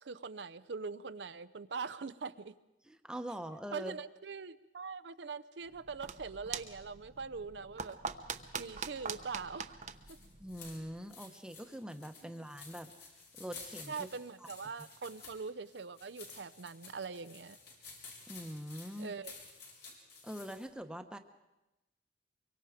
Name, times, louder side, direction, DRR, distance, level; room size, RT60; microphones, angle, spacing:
voice 1, 0.0-2.5 3.7-8.0 8.6-9.8 10.1-10.2 12.2-12.5 13.9-17.6 19.0-19.4, right 5 dB, 70° right, 15 dB, 0.6 m, -43 dB
voice 2, 2.8-4.0 10.4-12.9 13.4-14.1 14.4-14.5 14.8-14.9 18.3-19.1 20.2-21.2, equal, 5° right, 7 dB, 1.1 m, -43 dB
sound 1, 5.7-11.0, right 6 dB, 45° right, 0.9 m, -44 dB
sound 2, 9.9-20.7, left 4 dB, 65° left, 5.1 m, -53 dB
24.0 x 23.0 x 5.1 m, 1.0 s
head